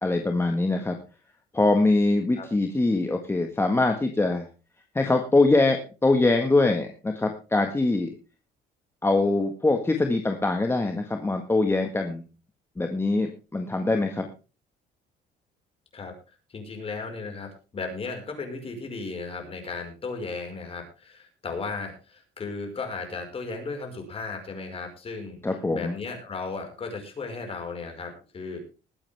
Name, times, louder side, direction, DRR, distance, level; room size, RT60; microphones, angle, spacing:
voice 1, 0.0-1.0 1.5-4.5 4.9-8.1 9.0-12.2 12.8-14.3 25.4-25.9, left 2 dB, 15° left, 4 dB, 1.6 m, -23 dB
voice 2, 16.5-25.4 25.7-28.6, left 4 dB, 35° left, 4 dB, 5.2 m, -35 dB
20.5 x 8.8 x 3.5 m, 0.33 s
cardioid pair, 110°, 17 cm